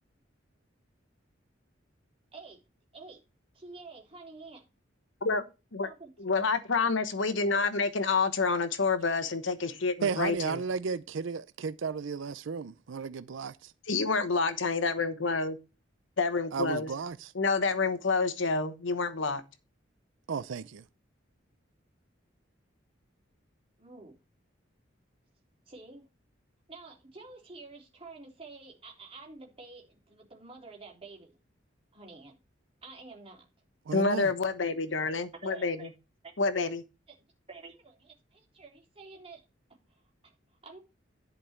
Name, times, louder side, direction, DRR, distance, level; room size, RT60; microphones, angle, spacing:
voice 1, 3.5-4.6 5.8-6.1 23.8-24.2 25.7-26.1 26.7-31.3 31.9-32.4 32.8-33.5 35.4-35.9 36.2-36.3 37.1-37.2 37.5-39.4 39.9-40.3 40.6-40.8, right 3 dB, 30° right, 3.5 m, -49 dB
voice 2, 6.2-10.6 13.9-15.5 16.2-16.9 17.3-19.4 33.9-35.8 36.4-36.8, left 4 dB, 75° left, 1.1 m, -28 dB
voice 3, 10.0-13.7 16.5-17.3 20.3-20.8 33.9-34.3, right 5 dB, 75° right, 0.5 m, -34 dB
11.0 x 5.4 x 4.4 m
head